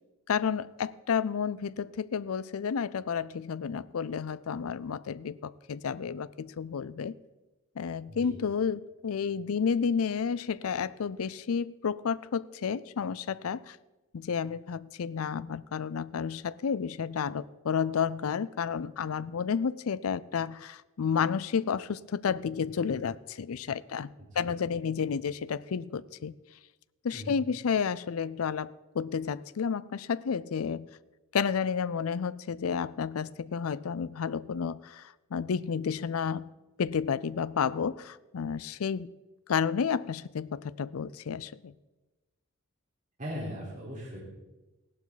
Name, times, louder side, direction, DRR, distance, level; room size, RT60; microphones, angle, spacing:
voice 1, 0.3-7.1 7.8-13.8 14.1-26.4 27.0-30.9 31.3-36.5 36.8-39.1 39.5-41.7, left 6 dB, 90° left, 18 dB, 0.5 m, -31 dB
voice 2, 24.2-24.5 27.1-27.3 43.2-44.2, equal, 40° right, -6 dB, 4.1 m, -39 dB
16.5 x 11.5 x 4.1 m, 1.1 s
head